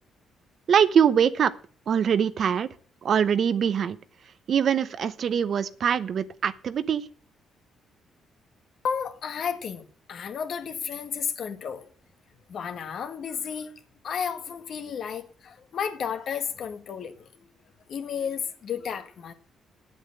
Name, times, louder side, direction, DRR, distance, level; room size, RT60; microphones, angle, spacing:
voice 1, 0.7-1.5 1.9-2.7 3.0-4.0 4.5-7.0, right 8 dB, 55° right, 0.8 m, -23 dB
voice 2, 8.8-9.8 10.1-11.8 12.5-13.7 14.0-17.3 17.9-19.3, left 7 dB, 60° left, 1.7 m, -32 dB
8.9 x 8.2 x 7.7 m
cardioid pair, 90°, 0 cm